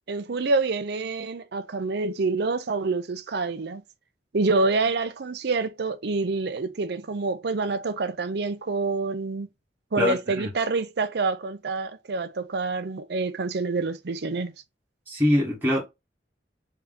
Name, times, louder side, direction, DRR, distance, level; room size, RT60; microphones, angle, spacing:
voice 1, 0.1-3.8 4.3-9.5 9.9-14.5, right 3 dB, 65° right, 0.5 m, -27 dB
voice 2, 10.0-10.5 15.1-15.8, left 1 dB, 10° right, 1.1 m, -23 dB
3.5 x 2.8 x 3.5 m
head